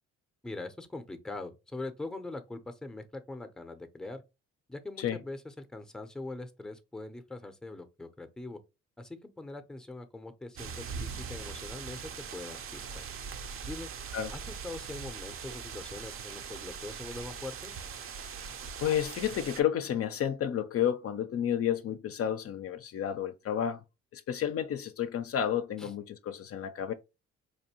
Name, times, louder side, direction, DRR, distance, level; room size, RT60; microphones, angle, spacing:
voice 1, 0.4-4.2 4.7-8.6 9.0-13.0 13.6-13.9 14.3-17.7 25.8-25.9, left 2 dB, ahead, 0.5 m, -42 dB
sound 1, 10.5-19.6, right 6 dB, 45° right, 0.5 m, -41 dB
voice 2, 18.8-23.8 24.1-26.9, left 9 dB, 50° left, 0.4 m, -31 dB
4.3 x 2.6 x 2.8 m
cardioid pair, 90°, 30 cm